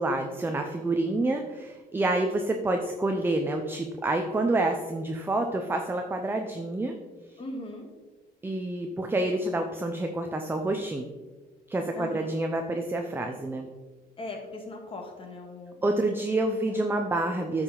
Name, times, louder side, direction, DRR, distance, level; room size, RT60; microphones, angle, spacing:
voice 1, 0.0-6.9 8.4-11.0 11.7-13.7 15.8-17.6, right 2 dB, 10° right, 4 dB, 0.7 m, -28 dB
voice 2, 7.4-7.9 11.9-12.3 14.2-16.2 16.7-16.8, left 2 dB, 30° left, 2 dB, 1.9 m, -39 dB
9.1 x 6.1 x 3.9 m, 1.2 s
cardioid pair, 110°, 17 cm